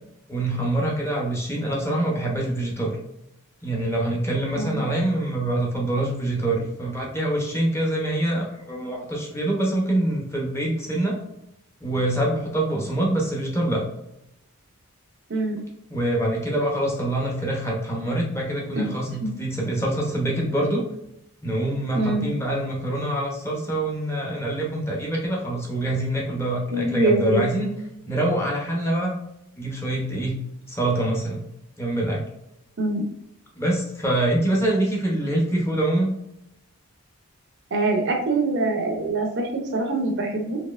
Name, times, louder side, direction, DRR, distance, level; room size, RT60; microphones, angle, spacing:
voice 1, 0.3-3.0 3.6-11.1 11.8-13.8 15.9-20.8 21.4-27.7 28.1-29.2 29.6-30.3 30.7-31.4 31.8-32.2 33.5-36.1, right 1 dB, 10° left, -2 dB, 0.7 m, -25 dB
voice 2, 21.9-22.3 26.7-27.4 32.8-33.1 37.7-40.6, right 2 dB, 50° right, 3 dB, 0.5 m, -24 dB
4.1 x 2.8 x 2.4 m, 0.83 s
head